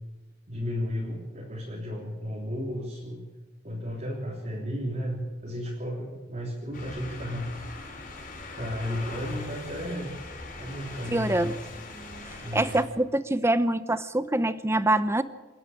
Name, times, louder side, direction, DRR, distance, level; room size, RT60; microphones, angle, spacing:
voice 1, 0.5-3.2 3.6-7.5 8.6-10.1 10.6-11.6 12.4-12.7, equal, 35° right, -3 dB, 3.5 m, -33 dB
sound 1, 6.7-12.8, left 2 dB, 45° left, 6.1 m, -41 dB
voice 2, 11.1-11.6 12.5-15.2, right 1 dB, 15° right, 13 dB, 0.7 m, -25 dB
27.5 x 11.0 x 8.7 m, 1.2 s
head